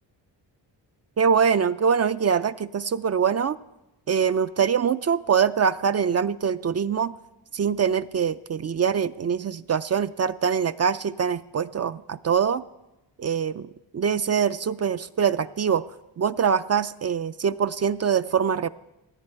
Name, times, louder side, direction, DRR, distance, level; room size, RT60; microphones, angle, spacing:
voice 1, 1.2-3.6 4.1-7.1 7.5-12.6 13.2-15.8 16.2-18.7, right 7 dB, 35° right, 13 dB, 0.4 m, -24 dB
17.0 x 9.6 x 4.5 m, 0.98 s
cardioid pair, 60°, 44 cm